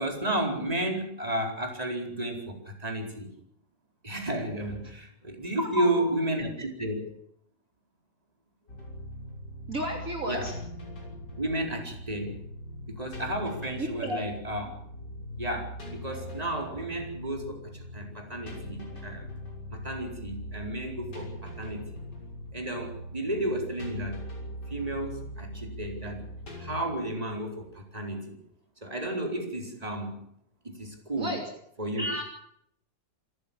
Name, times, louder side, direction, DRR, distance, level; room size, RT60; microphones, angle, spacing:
voice 1, 0.0-3.3 4.0-7.1 10.3-10.5 11.4-12.4 12.9-14.7 15.4-19.3 19.7-22.0 22.5-24.2 24.7-26.2 26.6-28.4 28.8-30.2 30.6-31.4 31.8-32.1, right 1 dB, 20° right, 2 dB, 4.6 m, -32 dB
voice 2, 5.6-6.1 9.7-10.5 13.8-14.2 31.2-31.4 32.0-32.2, equal, 45° right, 1 dB, 3.6 m, -32 dB
sound 1, 8.7-26.8, left 1 dB, 65° left, 6.7 m, -41 dB
27.5 x 14.5 x 7.4 m, 0.72 s
omnidirectional pair, 2.0 m